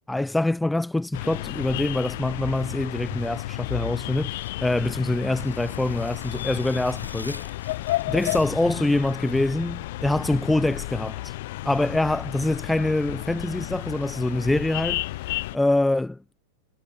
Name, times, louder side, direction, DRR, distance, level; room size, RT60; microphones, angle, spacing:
voice 1, 0.1-7.5 8.1-11.3 11.6-16.2, left 2 dB, 5° left, 0.5 m, -25 dB
sound 1, 1.1-15.6, left 18 dB, 50° left, 0.6 m, -32 dB
sound 2, 4.3-8.8, left 2 dB, 85° left, 4.6 m, -45 dB
figure-of-eight pair, 90°, 0 cm